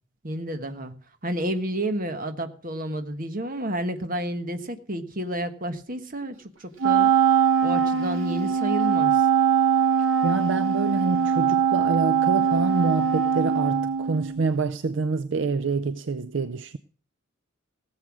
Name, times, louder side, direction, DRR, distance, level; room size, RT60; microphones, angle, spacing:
voice 1, 0.2-0.9 1.2-7.1 7.6-9.2, right 1 dB, 45° right, 1.4 m, -30 dB
Wind instrument woodwind instrument, 6.8-14.4, right 7 dB, 85° right, 1.9 m, -22 dB
voice 2, 10.2-16.8, right 4 dB, 65° right, 0.5 m, -27 dB
17.0 x 7.9 x 6.3 m
head